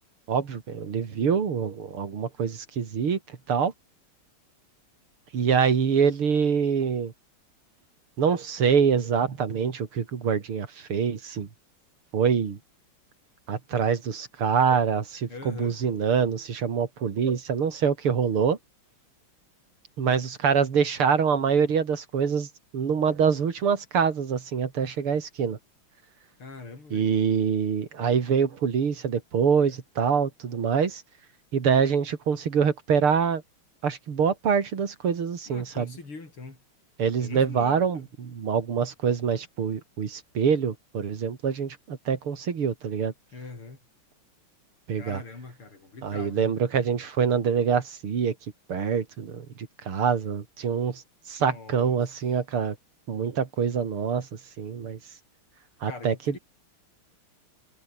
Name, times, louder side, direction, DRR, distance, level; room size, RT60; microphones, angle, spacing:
voice 1, 0.3-3.2 3.5-3.7 5.3-7.1 8.2-11.5 12.1-12.6 13.5-18.6 20.0-25.6 26.9-31.0 31.5-33.4 33.8-35.9 37.0-38.0 38.3-43.1 44.9-45.2 46.0-48.3 48.7-51.0 51.3-52.8 53.1-54.3 54.6-55.0 55.8-56.1, right 6 dB, 85° right, 3.3 m, -25 dB
voice 2, 15.3-15.8 26.4-27.1 35.5-36.6 37.2-38.1 43.3-43.8 44.9-46.6 51.4-52.1 55.8-56.4, left 3 dB, 85° left, 6.4 m, -42 dB
omnidirectional pair, 2.3 m